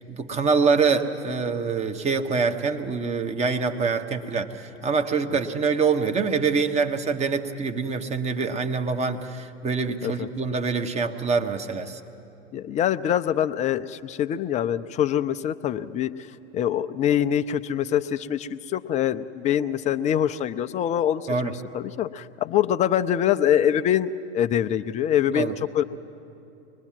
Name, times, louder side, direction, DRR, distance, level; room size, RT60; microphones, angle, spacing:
voice 1, 0.0-12.0 21.3-21.5 25.3-25.5, right 5 dB, 20° right, 7 dB, 1.2 m, -25 dB
voice 2, 12.5-16.1 16.5-25.8, left 10 dB, 20° left, 13 dB, 0.5 m, -24 dB
24.0 x 20.5 x 7.5 m, 2.8 s
hypercardioid pair, 105°, 35 cm